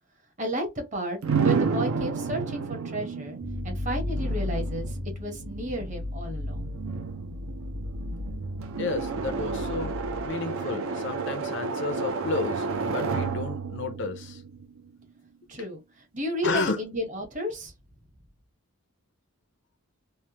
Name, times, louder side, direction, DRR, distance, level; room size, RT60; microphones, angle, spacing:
voice 1, 0.4-3.4 3.6-6.6 15.5-15.8 16.1-17.7, right 1 dB, 35° right, 0.9 m, -32 dB
sound 1, 1.2-15.1, right 5 dB, 65° right, 0.5 m, -31 dB
sound 2, 3.4-10.3, left 2 dB, 85° right, 1.2 m, -35 dB
voice 2, 8.8-10.0 10.2-14.4 16.4-16.8, left 3 dB, 55° left, 0.5 m, -32 dB
3.2 x 2.1 x 2.8 m
head